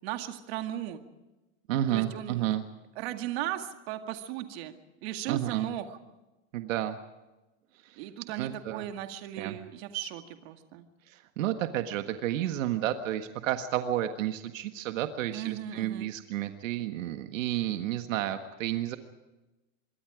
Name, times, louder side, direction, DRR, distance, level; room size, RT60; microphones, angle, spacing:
voice 1, 0.0-1.0 1.9-2.6 3.0-4.7 5.0-6.0 8.0-10.9 15.3-16.1, right 12 dB, 55° right, 7 dB, 2.1 m, -37 dB
voice 2, 1.7-2.6 5.3-5.7 6.5-7.0 7.8-8.0 8.4-8.9 9.4-9.6 11.1-19.0, right 12 dB, 80° right, 8 dB, 1.6 m, -31 dB
26.0 x 23.5 x 5.0 m, 1.1 s
supercardioid pair, 170°, 38 cm